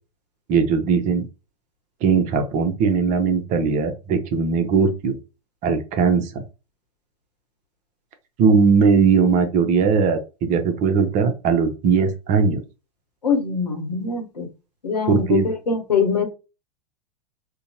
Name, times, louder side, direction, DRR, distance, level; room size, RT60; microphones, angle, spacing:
voice 1, 0.5-1.3 2.0-5.2 5.6-6.4 8.4-12.6 15.1-15.5, right 5 dB, 40° right, 0.6 m, -19 dB
voice 2, 13.2-14.5 14.8-16.2, left 5 dB, 85° left, 0.8 m, -23 dB
2.7 x 2.2 x 2.8 m
hypercardioid pair, 95°, 20 cm